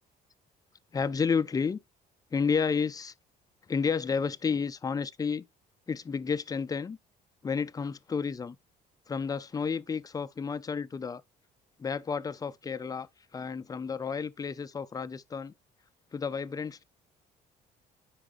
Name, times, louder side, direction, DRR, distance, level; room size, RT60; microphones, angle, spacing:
voice 1, 0.9-1.8 2.3-3.1 3.7-5.4 5.9-7.0 7.4-8.6 9.1-11.2 11.8-15.5 16.1-16.8, left 5 dB, 20° left, 0.5 m, -31 dB
9.9 x 4.9 x 2.6 m
cardioid pair, 110°, 17 cm